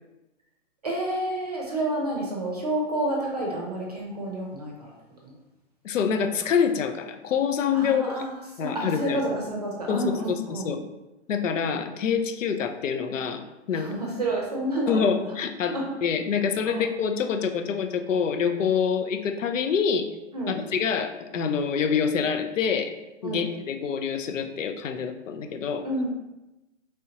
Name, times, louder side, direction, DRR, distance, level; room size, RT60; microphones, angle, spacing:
voice 1, 0.8-4.9 5.2-5.3 7.7-8.3 8.6-10.7 13.7-15.3 15.7-15.8 16.7-16.9 20.3-20.6 23.2-23.4 25.8-26.1, right 1 dB, 35° right, -2 dB, 0.6 m, -29 dB
voice 2, 5.8-8.2 8.6-9.2 9.9-10.8 11.3-13.4 13.7-13.9 14.9-20.1 20.5-22.9 23.2-25.9, left 6 dB, 85° left, 6 dB, 0.6 m, -26 dB
4.2 x 3.4 x 2.8 m, 0.99 s
hypercardioid pair, 175°, 37 cm